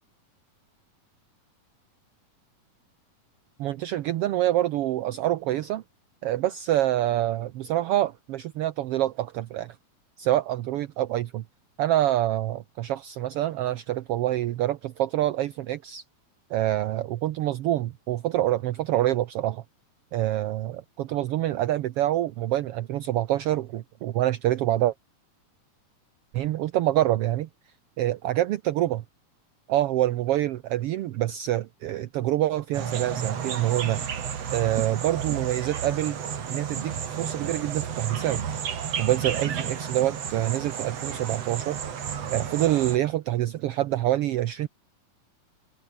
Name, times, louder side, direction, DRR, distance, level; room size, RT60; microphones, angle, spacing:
voice 1, 3.6-5.8 6.2-9.8 10.2-11.4 11.8-16.0 16.5-19.6 20.1-24.9 26.3-27.5 28.0-29.0 29.7-34.0 34.5-36.2 36.5-38.4 39.0-41.8 42.3-44.7, right 13 dB, 75° right, 1.3 m, -26 dB
sound 1, 32.7-43.0, right 7 dB, 55° right, 3.2 m, -32 dB
omnidirectional pair, 3.6 m